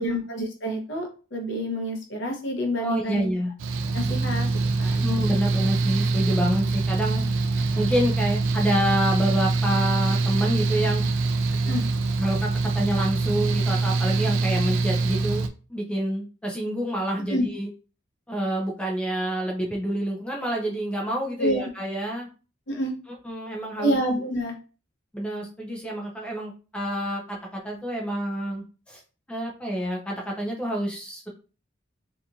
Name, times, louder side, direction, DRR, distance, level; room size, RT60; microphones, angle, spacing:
voice 1, 0.0-3.3 3.9-5.4 11.6-11.8 17.3-17.5 21.4-21.6 22.7-22.9 23.8-24.6, equal, 60° left, 2 dB, 0.7 m, -28 dB
voice 2, 2.8-3.5 5.0-7.2 7.7-11.1 12.2-17.7 18.3-22.3 23.2-24.0 25.1-29.0 29.3-31.3, equal, 5° left, -1 dB, 0.4 m, -28 dB
Mechanical fan, 3.6-15.5, right 3 dB, 70° right, 0.3 m, -24 dB
2.8 x 2.5 x 2.3 m, 0.35 s
head